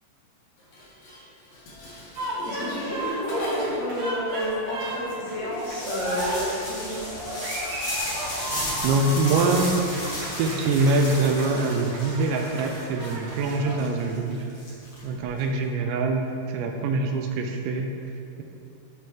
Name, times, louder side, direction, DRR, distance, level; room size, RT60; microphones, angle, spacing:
Dishes pots and pans, 0.6-4.0, left 1 dB, 85° left, 1.4 m, -41 dB
sound 1, 2.1-13.8, right 1 dB, 50° right, 3.0 m, -34 dB
voice 1, 2.4-7.1, equal, 70° left, -5 dB, 3.4 m, -31 dB
sound 2, 5.5-15.4, left 1 dB, 45° left, 2.2 m, -35 dB
voice 2, 8.8-9.8 10.4-14.5 15.0-17.9, right 3 dB, 80° right, 4 dB, 2.8 m, -24 dB
13.0 x 4.5 x 3.6 m, 2.7 s
omnidirectional pair, 5.2 m